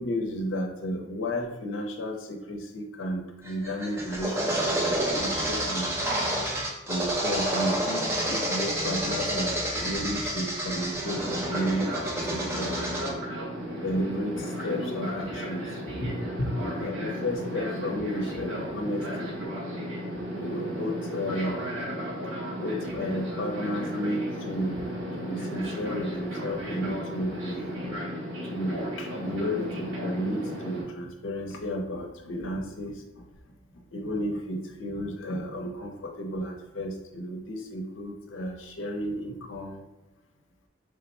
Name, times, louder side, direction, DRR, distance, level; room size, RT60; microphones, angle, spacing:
voice 1, 0.0-6.0 6.9-13.0 13.4-19.4 20.2-21.7 22.5-24.9 25.2-27.9 28.5-33.2 33.7-39.8, equal, 75° left, 3 dB, 0.6 m, -33 dB
sound 1, 3.5-13.1, right 1 dB, 15° right, 0.4 m, -29 dB
Fixed-wing aircraft airplane, 11.1-30.8, equal, 80° right, 0.8 m, -34 dB
3.4 x 2.1 x 4.1 m, 0.91 s
head